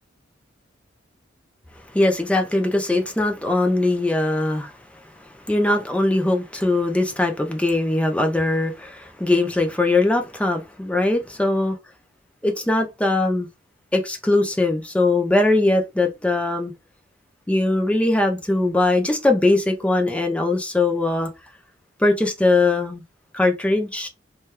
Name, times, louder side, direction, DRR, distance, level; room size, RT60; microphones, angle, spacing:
voice 1, 1.9-4.7 5.5-11.8 12.4-13.5 13.9-16.7 17.5-21.3 22.0-23.0 23.3-24.1, left 2 dB, 5° left, 0.5 m, -21 dB
2.8 x 2.3 x 3.2 m
head